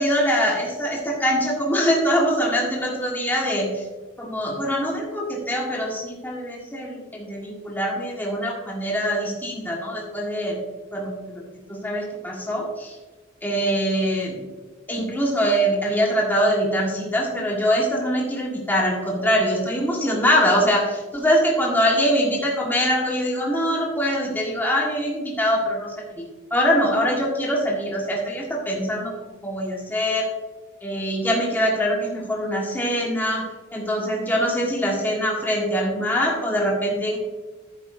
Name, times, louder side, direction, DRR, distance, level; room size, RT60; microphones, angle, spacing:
voice 1, 0.0-3.8 4.2-10.6 10.9-11.4 11.7-13.0 13.4-14.4 14.9-26.2 26.5-29.1 29.4-30.3 30.8-33.5 33.7-37.2, equal, 10° left, -3 dB, 1.7 m, -23 dB
10.5 x 9.2 x 2.6 m, 1.3 s
head